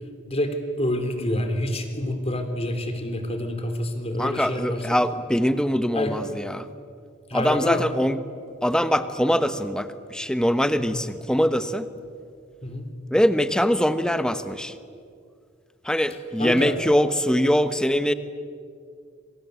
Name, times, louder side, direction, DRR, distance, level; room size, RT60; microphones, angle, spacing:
voice 1, 0.3-4.8 5.9-6.1 7.3-7.8 10.8-11.0 12.6-12.8 16.4-16.8, left 1 dB, 30° left, 7 dB, 3.5 m, -27 dB
voice 2, 4.2-6.7 7.3-8.2 8.6-11.9 13.1-14.8 15.8-18.1, equal, 5° left, 11 dB, 1.1 m, -23 dB
27.5 x 25.5 x 8.3 m, 2.2 s
head